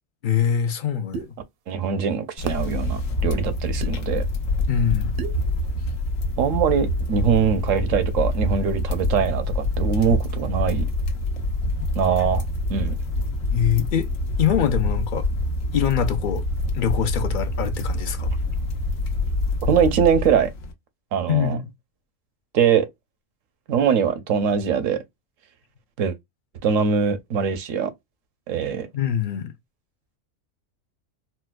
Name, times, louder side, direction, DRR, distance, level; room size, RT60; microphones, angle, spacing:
voice 1, 0.2-1.3 4.7-5.1 13.5-14.1 14.4-15.2 15.7-16.4 16.7-18.4 21.3-21.7 28.9-29.5, left 9 dB, 60° left, 0.5 m, -23 dB
sound 1, 1.1-1.3 2.5-2.7 3.8-3.9 5.2-5.4, right 6 dB, 60° right, 0.7 m, -30 dB
voice 2, 1.7-4.2 6.4-10.8 11.9-12.4 12.7-12.9 19.6-20.5 21.1-21.6 22.5-22.9 23.7-25.0 26.0-26.2 26.6-27.9 28.5-28.9, right 7 dB, 85° right, 1.1 m, -22 dB
sound 2, 2.4-20.7, left 2 dB, 85° left, 1.1 m, -26 dB
4.2 x 2.1 x 2.2 m
omnidirectional pair, 1.3 m